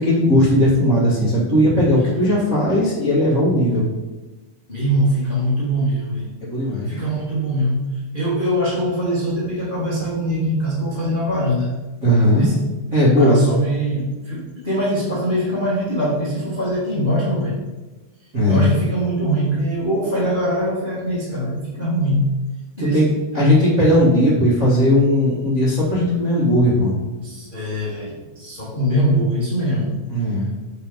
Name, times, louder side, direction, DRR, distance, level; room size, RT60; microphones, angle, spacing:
voice 1, 0.0-3.9 6.4-6.9 12.0-12.5 12.9-13.4 18.3-18.7 22.8-23.1 23.3-26.9 30.1-30.5, equal, 35° right, -8 dB, 1.2 m, -17 dB
voice 2, 4.7-6.3 6.9-11.7 12.3-12.7 13.2-17.5 18.5-22.3 22.8-23.0 27.2-29.9, equal, 30° left, -7 dB, 0.9 m, -22 dB
7.1 x 4.2 x 5.2 m, 1.2 s
omnidirectional pair, 3.7 m